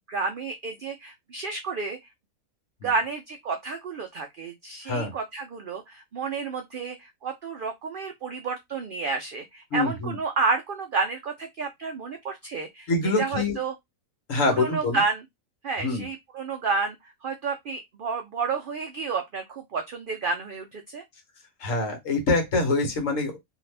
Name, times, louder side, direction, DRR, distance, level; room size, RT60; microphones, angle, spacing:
voice 1, 0.1-2.0 2.8-12.9 13.2-13.7 14.6-15.2 15.6-21.0, right 4 dB, 90° right, 0.4 m, -30 dB
voice 2, 9.7-10.2 12.9-13.6 14.3-15.0 15.8-16.1 21.6-23.4, left 2 dB, 65° left, 1.4 m, -25 dB
2.8 x 2.4 x 3.2 m
omnidirectional pair, 1.5 m